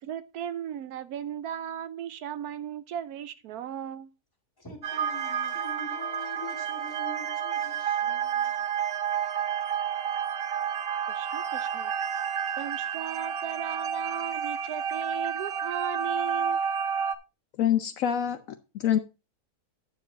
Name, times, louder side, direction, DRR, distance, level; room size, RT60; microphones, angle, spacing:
voice 1, 0.0-4.1 11.1-11.9 12.6-16.6, right 9 dB, 80° right, 1.2 m, -36 dB
voice 2, 4.6-8.7 9.0-9.2, left 2 dB, 15° left, 2.3 m, -44 dB
sound 1, 4.8-17.2, right 8 dB, 50° right, 0.8 m, -30 dB
voice 3, 17.6-19.0, left 10 dB, 65° left, 1.0 m, -26 dB
9.5 x 7.1 x 3.8 m
omnidirectional pair, 1.6 m